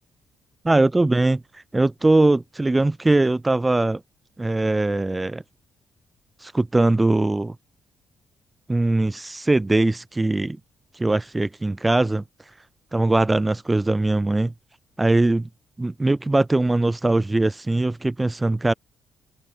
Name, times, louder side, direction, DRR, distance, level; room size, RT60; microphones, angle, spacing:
voice 1, 0.6-4.0 4.4-5.4 6.4-7.6 8.7-10.6 10.9-12.2 12.9-14.5 15.0-15.5 15.8-18.7, right 2 dB, 15° right, 0.3 m, -21 dB
cardioid pair, 90°, 0 cm